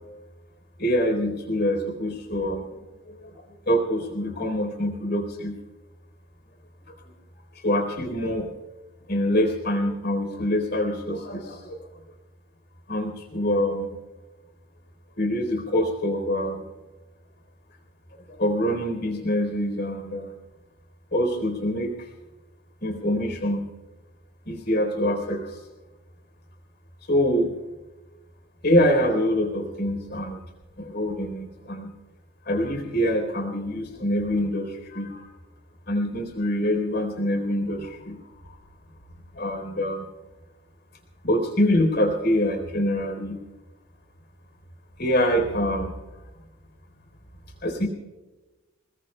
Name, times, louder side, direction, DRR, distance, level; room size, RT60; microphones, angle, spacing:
voice 1, 0.8-2.8 3.1-3.2 3.7-5.6 7.6-8.5 9.1-11.8 12.9-13.9 15.2-16.7 18.1-20.3 21.1-22.0 22.8-23.7 24.5-25.6 27.1-27.5 28.6-30.4 30.8-31.9 32.5-35.3 35.9-38.2 39.3-40.1 41.2-43.4 45.0-45.9 47.6-47.9, equal, 50° left, 5 dB, 3.8 m, -25 dB
27.5 x 21.0 x 2.3 m, 1.2 s
head